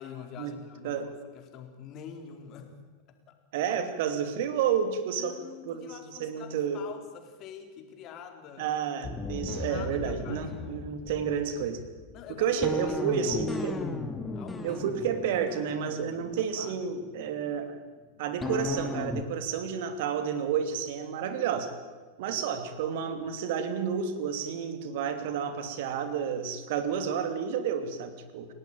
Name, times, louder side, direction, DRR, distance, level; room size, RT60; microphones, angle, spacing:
voice 1, 0.0-2.8 3.1-3.3 5.2-8.8 9.6-10.6 12.1-12.5 12.9-13.4 14.3-14.8 16.4-16.7 22.3-22.4, left 8 dB, 35° left, 5 dB, 4.2 m, -46 dB
voice 2, 3.5-5.4 5.7-6.8 8.6-11.8 12.4-13.8 14.6-17.7 18.2-21.7 22.2-28.5, right 7 dB, 50° right, 9 dB, 2.8 m, -30 dB
sound 1, 9.0-17.3 18.4-19.2, left 3 dB, 15° left, 2.6 m, -36 dB
30.0 x 18.0 x 9.1 m, 1.4 s
figure-of-eight pair, 90°, 0 cm